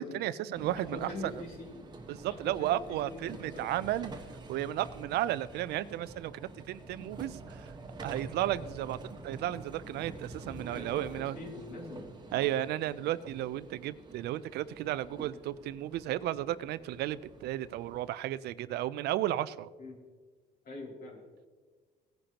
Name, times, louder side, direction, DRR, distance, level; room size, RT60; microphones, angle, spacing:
voice 1, 0.0-1.3 2.1-4.1 4.5-7.7 8.0-9.0 9.2-11.4 12.3-19.7, right 13 dB, 75° right, 16 dB, 0.5 m, -34 dB
sound 1, 0.5-18.1, right 2 dB, 25° right, 1.3 m, -47 dB
voice 2, 0.7-1.8 2.3-3.7 10.7-12.2 19.8-20.0 20.6-21.2, left 2 dB, 65° left, -1 dB, 3.0 m, -43 dB
17.5 x 10.5 x 2.9 m, 1.4 s
cardioid pair, 110°, 17 cm